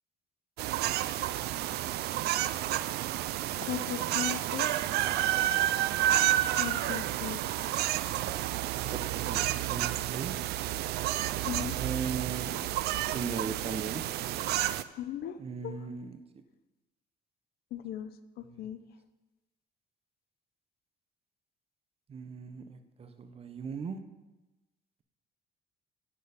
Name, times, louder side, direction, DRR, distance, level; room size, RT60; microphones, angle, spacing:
sound 1, 0.6-14.8, right 13 dB, 75° right, 0.4 m, -30 dB
voice 1, 3.6-4.7 6.6-7.4 11.5-11.8 15.0-15.4 15.6-15.7 17.7-18.8, left 11 dB, 65° left, 12 dB, 0.7 m, -37 dB
voice 2, 8.9-10.3 11.6-12.5 13.1-14.0 15.4-16.2 18.5-18.6 22.1-24.0, right 5 dB, 35° right, 10 dB, 0.8 m, -38 dB
9.0 x 6.7 x 5.1 m, 1.1 s
cardioid pair, 110°, 17 cm